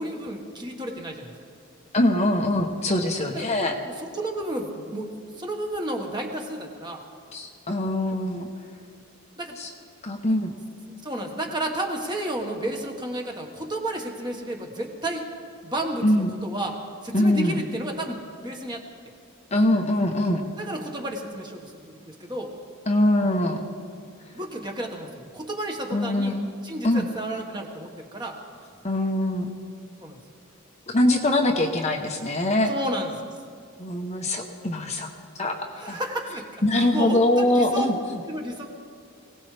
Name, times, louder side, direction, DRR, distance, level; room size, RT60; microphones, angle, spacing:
voice 1, 0.0-1.3 3.3-3.5 3.8-5.1 5.4-7.0 9.4-9.5 10.9-15.2 15.6-16.7 17.0-18.8 20.6-22.5 24.3-26.3 26.6-28.4 30.0-30.2 32.7-33.1 35.7-37.9 38.3-38.7, right 1 dB, 20° right, 1 dB, 1.5 m, -32 dB
voice 2, 1.9-3.8 7.3-8.5 9.6-9.7 10.0-10.5 16.0-16.3 17.1-17.6 19.5-20.4 22.9-23.6 25.9-26.5 26.8-27.1 28.8-29.5 30.9-32.7 33.8-35.1 35.4-36.0 36.6-38.2, left 1 dB, 30° left, 2 dB, 0.9 m, -23 dB
22.5 x 17.5 x 3.4 m, 2.1 s
head